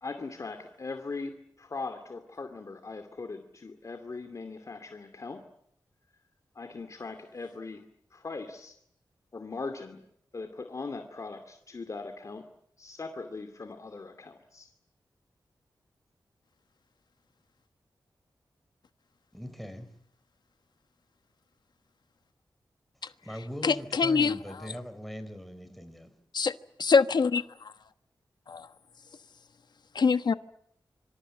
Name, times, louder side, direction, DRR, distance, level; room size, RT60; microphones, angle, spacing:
voice 1, 0.0-5.4 6.6-7.8 8.1-8.8 9.3-10.0 10.3-12.4 12.8-14.7, left 3 dB, 40° left, 2.5 m, -40 dB
voice 2, 19.3-19.9 23.2-26.1, equal, ahead, 4.2 m, -41 dB
voice 3, 23.6-24.4 26.3-26.5 26.8-27.7 28.5-28.7 29.9-30.3, left 5 dB, 65° left, 1.2 m, -24 dB
26.5 x 25.5 x 7.8 m
wide cardioid pair, 155°, 8 cm